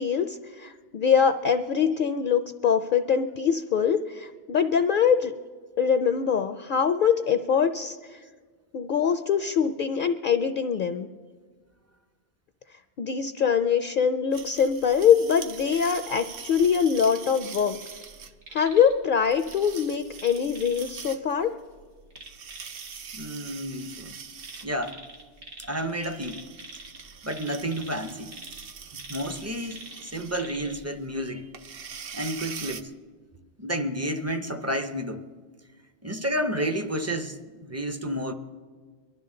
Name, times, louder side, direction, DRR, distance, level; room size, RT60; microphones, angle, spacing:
voice 1, 0.0-5.3 5.8-8.2 8.7-11.1 13.0-17.8 18.5-21.5, left 7 dB, 60° left, 0.6 m, -23 dB
sound 1, 14.3-32.8, right 6 dB, 65° right, 0.9 m, -43 dB
sound 2, 17.4-18.1 18.4-18.9 19.5-20.9 22.1-23.0 24.4-25.9 26.2-30.8 31.2-31.3, right 2 dB, 85° right, 2.1 m, -46 dB
voice 2, 23.1-24.2 24.6-25.0 25.6-26.4 27.2-28.4 28.9-31.5 32.1-32.9 33.6-35.3 36.0-38.3, equal, 20° right, 0.5 m, -31 dB
23.0 x 12.0 x 3.8 m
omnidirectional pair, 1.1 m